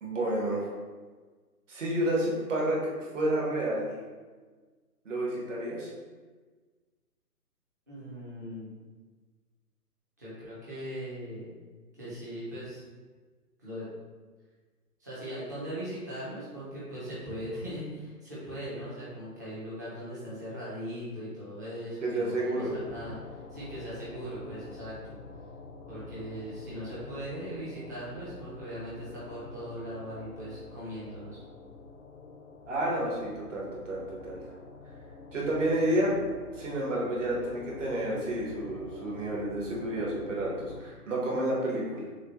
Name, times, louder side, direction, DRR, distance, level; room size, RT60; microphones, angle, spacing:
voice 1, 0.0-0.6 1.7-3.9 5.0-5.9 22.0-22.7 32.7-34.4 35.3-36.2 36.5-42.1, right 1 dB, 50° right, -4 dB, 1.4 m, -30 dB
voice 2, 7.9-8.8 10.2-11.5 12.0-12.8 13.6-13.9 15.0-25.1 25.9-31.4, equal, 10° right, -10 dB, 0.6 m, -39 dB
sound 1, 22.7-40.8, left 4 dB, 45° left, 0.7 m, -47 dB
6.4 x 2.2 x 3.0 m, 1.4 s
hypercardioid pair, 150°, 48 cm